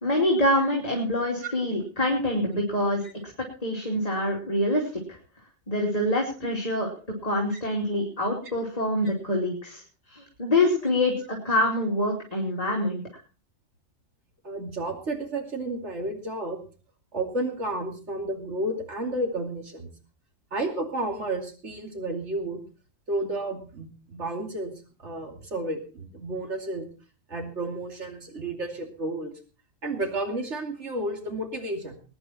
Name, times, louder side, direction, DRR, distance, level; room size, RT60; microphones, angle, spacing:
voice 1, 0.0-3.0 3.6-5.0 5.7-6.9 7.2-9.8 10.1-13.0, left 1 dB, 30° left, -1 dB, 3.0 m, -25 dB
voice 2, 14.4-16.6 17.1-19.9 20.5-22.6 23.1-26.9 27.3-29.3 29.8-32.0, right 2 dB, 60° right, 4 dB, 3.0 m, -32 dB
21.0 x 10.0 x 4.4 m, 0.37 s
omnidirectional pair, 1.4 m